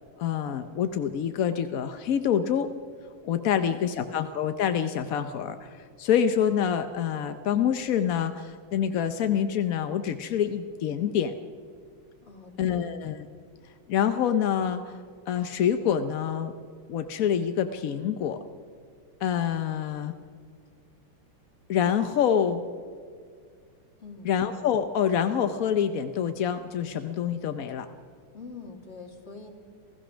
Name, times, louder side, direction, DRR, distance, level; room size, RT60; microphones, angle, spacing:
voice 1, 0.2-2.7 3.2-11.3 12.6-13.3 13.9-16.6 16.9-18.4 19.2-20.1 21.7-22.6 24.2-27.9, left 8 dB, 65° left, 9 dB, 0.8 m, -26 dB
voice 2, 3.5-4.0 12.2-13.0 24.0-24.4 28.3-29.5, left 4 dB, 30° left, 2 dB, 2.6 m, -45 dB
28.0 x 16.0 x 6.2 m, 2.1 s
omnidirectional pair, 2.3 m